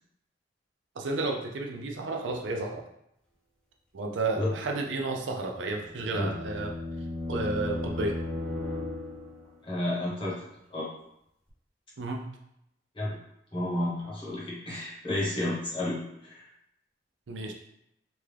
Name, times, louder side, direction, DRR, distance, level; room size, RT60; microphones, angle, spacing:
voice 1, 1.0-2.8 3.9-6.7 7.3-8.2 12.0-12.3 17.3-17.5, right 2 dB, 80° right, 2 dB, 0.5 m, -32 dB
sound 1, 5.6-9.5, left 2 dB, 5° left, 0.7 m, -35 dB
voice 2, 9.6-10.4 10.7-10.9 12.9-13.2 13.5-16.4, left 1 dB, 30° left, -6 dB, 1.2 m, -31 dB
3.4 x 2.3 x 3.3 m, 0.78 s
head